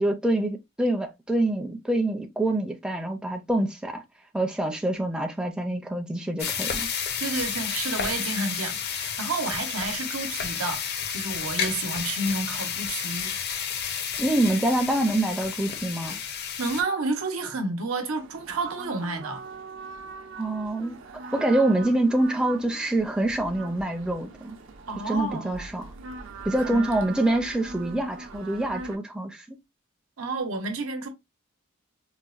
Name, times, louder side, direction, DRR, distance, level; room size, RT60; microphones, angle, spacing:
voice 1, 0.0-4.0 4.3-6.9 14.2-16.2 20.4-21.0 21.3-24.6 25.1-25.9 26.5-29.6, right 1 dB, 5° right, 0.4 m, -26 dB
sound 1, 6.4-16.8, left 7 dB, 50° left, 0.5 m, -31 dB
voice 2, 7.2-13.4 16.6-19.4 24.9-25.7 26.6-26.9 30.2-31.1, right 3 dB, 90° right, 0.8 m, -30 dB
sound 2, 18.1-29.0, right 4 dB, 65° right, 0.5 m, -41 dB
4.0 x 2.1 x 2.4 m
head